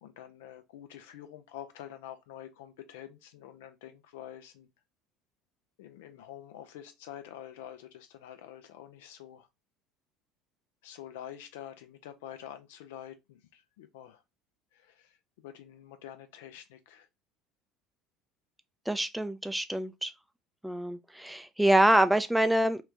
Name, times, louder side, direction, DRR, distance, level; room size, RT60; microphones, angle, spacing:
voice 1, 0.0-4.7 5.8-9.5 10.8-14.2 14.7-15.1 15.4-17.1, left 11 dB, 70° left, 0.4 m, -47 dB
voice 2, 18.9-20.1 20.6-22.8, right 1 dB, 5° right, 0.4 m, -25 dB
3.0 x 2.4 x 3.2 m
hypercardioid pair, 65°, 0 cm